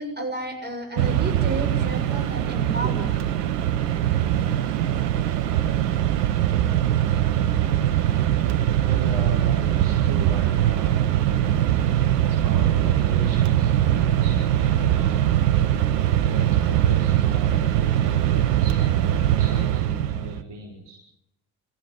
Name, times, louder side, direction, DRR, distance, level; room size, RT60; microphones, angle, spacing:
voice 1, 0.0-3.1, right 1 dB, 20° right, 4 dB, 7.3 m, -31 dB
Mechanisms, 1.0-20.4, right 11 dB, 85° right, 1.0 m, -21 dB
voice 2, 8.8-11.1 12.1-15.7 16.2-21.0, right 2 dB, 55° right, -1 dB, 5.5 m, -39 dB
25.0 x 15.0 x 9.6 m, 0.88 s
hypercardioid pair, 45°, 47 cm